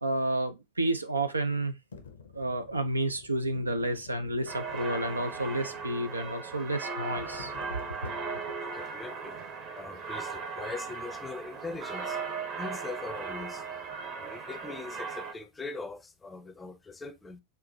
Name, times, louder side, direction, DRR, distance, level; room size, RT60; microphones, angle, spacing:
voice 1, 0.0-1.7 2.3-7.5 8.0-8.1, right 1 dB, 80° right, 0.5 m, -30 dB
sound 1, 1.9-8.6, left 5 dB, 70° left, 0.7 m, -51 dB
sound 2, 4.5-15.3, right 5 dB, 35° right, 0.9 m, -38 dB
voice 2, 8.7-9.4 9.7-12.2 12.6-13.6 14.2-17.4, left 3 dB, 15° left, 0.6 m, -41 dB
4.5 x 2.5 x 3.8 m
figure-of-eight pair, 90°, 0 cm